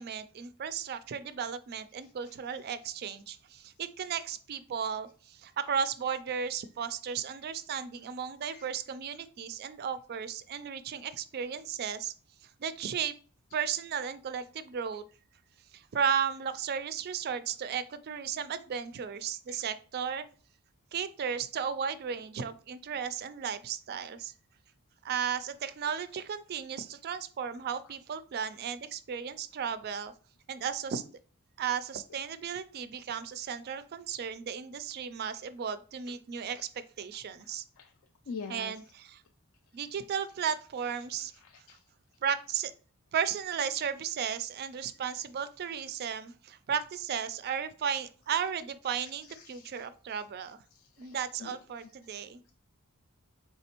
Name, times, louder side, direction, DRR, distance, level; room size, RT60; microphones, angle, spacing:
voice 1, 0.0-12.1 12.6-13.1 13.5-15.0 15.7-20.3 20.9-24.3 25.0-30.1 30.5-31.0 31.6-37.6 38.5-39.2 39.7-41.3 42.2-42.7 43.1-50.6 51.0-52.4, right 7 dB, 45° right, 13 dB, 0.3 m, -35 dB
voice 2, 2.0-2.4 8.5-8.7 19.5-19.6 37.8-37.9 38.3-38.7 41.4-41.8 49.0-49.9 50.7-51.9, left 5 dB, 60° left, 6 dB, 0.3 m, -46 dB
4.1 x 3.6 x 2.9 m, 0.39 s
head